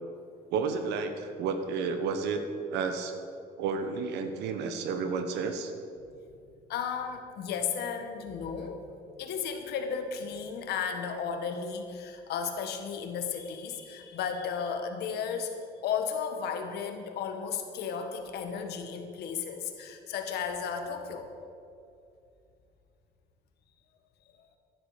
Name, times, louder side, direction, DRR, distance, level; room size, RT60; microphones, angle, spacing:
voice 1, 0.5-2.4 2.7-3.1 3.6-5.7, right 5 dB, 85° right, 7 dB, 1.4 m, -31 dB
voice 2, 6.7-8.9 9.2-15.5 15.8-21.3, left 6 dB, 75° left, 6 dB, 1.7 m, -34 dB
15.5 x 11.0 x 5.1 m, 2.5 s
cardioid pair, 110°, 17 cm